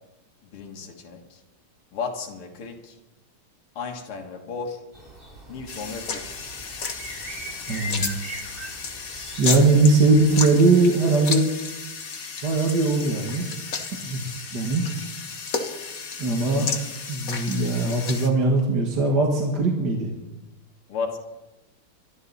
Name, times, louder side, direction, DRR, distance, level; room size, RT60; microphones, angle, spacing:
voice 1, 0.4-1.4 1.9-3.0 3.8-4.8 5.5-6.4 20.9-21.2, left 5 dB, 80° left, 2 dB, 2.5 m, -34 dB
sound 1, 4.9-10.4, right 1 dB, 25° right, 2.4 m, -40 dB
sound 2, 5.7-18.3, left 5 dB, 45° left, 1.6 m, -33 dB
voice 2, 7.7-8.2 9.4-11.5 12.4-13.5 14.0-14.2 14.5-14.9 16.2-16.7 17.1-20.1, right 3 dB, 50° right, 0 dB, 2.3 m, -20 dB
24.0 x 12.0 x 4.1 m, 1.0 s
omnidirectional pair, 2.4 m